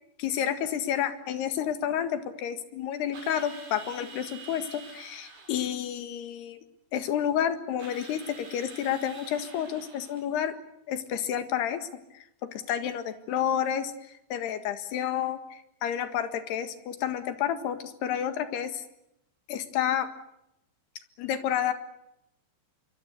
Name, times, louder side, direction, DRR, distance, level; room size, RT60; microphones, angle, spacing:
voice 1, 0.2-6.6 6.9-10.6 10.9-11.9 12.1-12.3 12.5-13.9 14.3-18.8 19.5-20.1 21.2-21.7, left 9 dB, 70° left, 9 dB, 3.7 m, -30 dB
Drill, 3.1-5.8 7.8-10.3, right 4 dB, 75° right, 7.5 m, -47 dB
25.0 x 24.0 x 8.2 m, 0.80 s
omnidirectional pair, 5.0 m